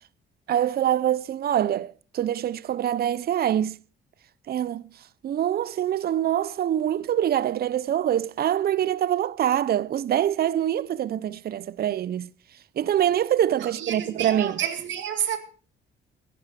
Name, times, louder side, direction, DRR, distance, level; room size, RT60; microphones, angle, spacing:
voice 1, 0.5-3.8 4.5-4.8 5.2-12.3 12.8-14.6, right 11 dB, 50° right, 0.5 m, -24 dB
voice 2, 13.6-15.4, right 9 dB, 70° right, 2.2 m, -30 dB
15.0 x 10.5 x 4.9 m
cardioid pair, 90°, 20 cm